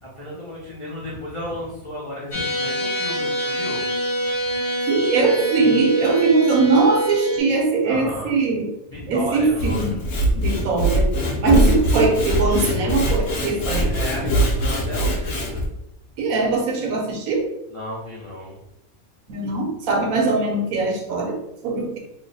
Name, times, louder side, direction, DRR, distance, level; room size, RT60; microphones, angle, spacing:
voice 1, 0.0-3.8 7.8-8.3 8.9-10.0 11.7-11.8 13.6-15.6 17.7-18.6, left 1 dB, 55° left, -5 dB, 0.3 m, -33 dB
sound 1, 2.3-7.4, right 1 dB, 35° left, 1.1 m, -24 dB
voice 2, 4.9-8.7 9.1-10.1 10.3-11.1 11.4-13.9 16.2-17.5 19.3-22.0, right 3 dB, 80° right, 1 dB, 1.2 m, -21 dB
Sawing / Wood, 9.4-15.7, equal, 80° left, 1.1 m, -22 dB
3.1 x 2.0 x 3.9 m, 0.82 s
omnidirectional pair, 1.5 m